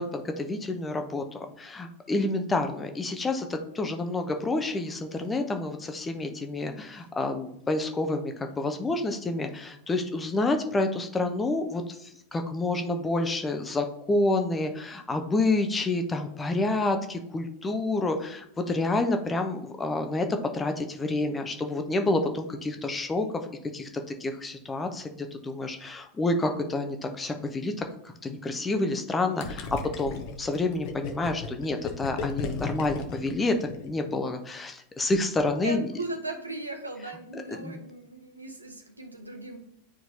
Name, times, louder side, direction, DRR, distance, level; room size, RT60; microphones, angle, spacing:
voice 1, 0.0-20.3 20.5-23.3 23.7-23.9 24.2-27.7 28.2-29.7 30.0-35.9 37.3-37.8, left 2 dB, 15° left, 5 dB, 0.8 m, -29 dB
Gurgling, 29.4-34.1, left 4 dB, 50° left, 0.9 m, -35 dB
voice 2, 35.6-39.6, right 2 dB, 85° right, 4 dB, 1.0 m, -37 dB
9.6 x 4.4 x 2.8 m, 0.77 s
figure-of-eight pair, 90°, 0 cm